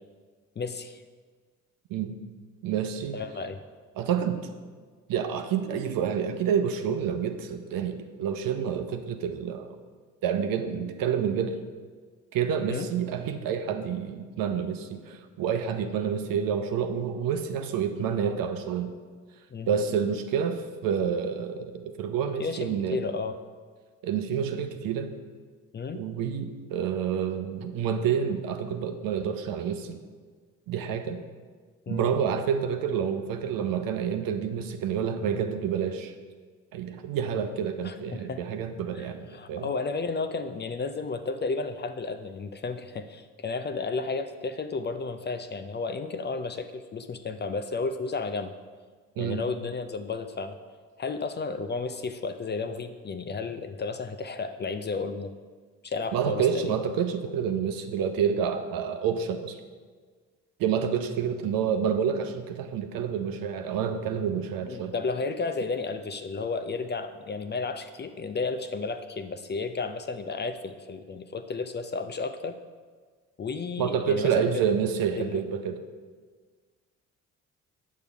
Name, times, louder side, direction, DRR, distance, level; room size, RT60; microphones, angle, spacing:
voice 1, 0.6-1.0 3.1-3.6 12.7-12.9 19.5-19.8 22.4-23.3 25.7-26.0 31.9-32.1 37.8-38.4 39.0-48.5 49.2-50.6 51.0-55.3 55.8-56.7 64.7-72.6 73.4-74.6 75.2-75.4, left 4 dB, 30° left, 9 dB, 0.5 m, -33 dB
voice 2, 2.6-3.2 4.0-4.4 5.1-9.7 10.2-11.6 12.3-18.9 19.7-23.0 24.0-25.1 25.9-30.0 30.7-31.2 31.9-36.1 36.7-39.7 49.2-49.4 56.1-59.6 60.6-64.9 73.8-75.8, right 7 dB, 60° right, 7 dB, 0.8 m, -28 dB
8.4 x 6.6 x 3.5 m, 1.5 s
hypercardioid pair, 50°, 38 cm